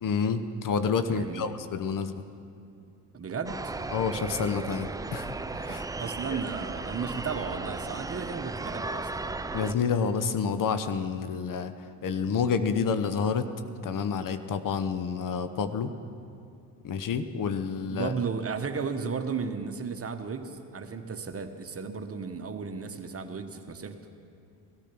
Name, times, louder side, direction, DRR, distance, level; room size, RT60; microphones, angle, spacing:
voice 1, 0.0-2.2 3.9-5.8 6.3-6.4 9.5-11.7 12.0-13.5 13.8-15.9 16.8-18.1, left 6 dB, 45° left, 10 dB, 1.0 m, -29 dB
voice 2, 1.1-1.5 3.1-3.8 6.0-9.1 17.9-24.0, right 5 dB, 30° right, 7 dB, 1.2 m, -34 dB
sound 1, 3.5-9.7, right 3 dB, 10° right, 0.4 m, -35 dB
17.0 x 13.5 x 6.1 m, 2.5 s
hypercardioid pair, 60°, 47 cm